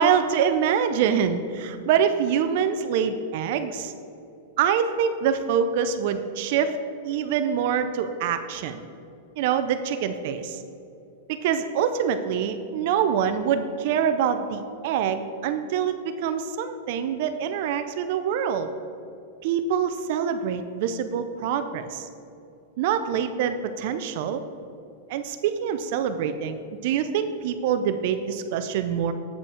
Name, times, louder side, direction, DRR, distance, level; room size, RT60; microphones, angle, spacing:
voice 1, 0.0-3.9 4.6-6.8 7.0-8.8 9.4-10.6 11.3-18.7 19.4-22.1 22.8-24.4 25.1-26.6 26.8-29.1, right 8 dB, 55° right, 9 dB, 0.4 m, -25 dB
8.4 x 5.1 x 4.9 m, 2.6 s
supercardioid pair, 145°, 0 cm